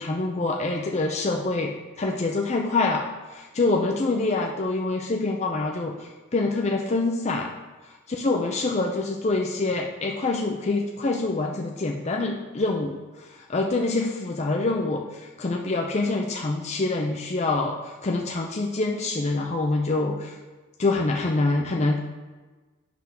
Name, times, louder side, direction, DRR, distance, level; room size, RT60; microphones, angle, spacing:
voice 1, 0.0-7.5 8.2-20.3 20.8-22.0, left 2 dB, 30° left, 0 dB, 0.5 m, -26 dB
7.8 x 3.5 x 5.9 m, 1.3 s
head